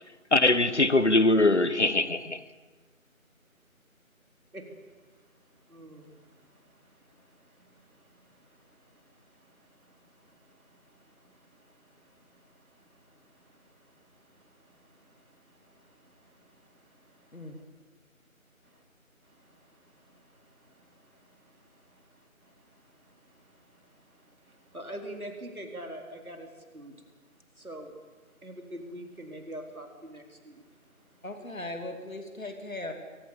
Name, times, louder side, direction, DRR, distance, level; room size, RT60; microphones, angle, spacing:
voice 1, 0.3-2.4, left 2 dB, 55° left, 14 dB, 1.3 m, -22 dB
voice 2, 4.5-17.6 18.6-18.8 19.2-31.2, right 1 dB, 90° right, 4 dB, 4.3 m, -49 dB
voice 3, 31.2-32.9, left 2 dB, 70° left, 5 dB, 2.8 m, -38 dB
23.5 x 18.5 x 7.2 m, 1.4 s
figure-of-eight pair, 175°, 42 cm